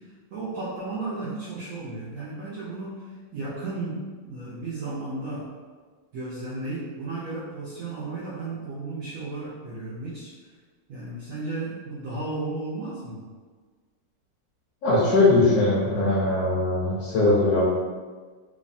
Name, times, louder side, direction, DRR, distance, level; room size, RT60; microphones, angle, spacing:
voice 1, 0.0-5.5 6.1-10.3 10.9-13.3, right 2 dB, 70° right, -8 dB, 0.8 m, -34 dB
voice 2, 14.8-17.6, left 2 dB, 70° left, -6 dB, 1.0 m, -20 dB
3.1 x 2.1 x 2.6 m, 1.5 s
omnidirectional pair, 1.9 m